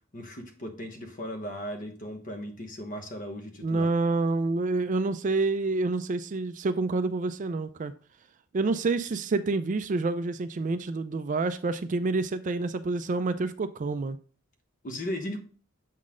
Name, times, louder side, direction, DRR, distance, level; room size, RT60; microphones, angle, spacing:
voice 1, 0.1-3.9 14.8-15.4, equal, 40° left, 1.2 m, -37 dB
voice 2, 3.6-7.9 8.5-14.2, right 3 dB, 40° right, 0.4 m, -28 dB
7.3 x 4.0 x 3.7 m
head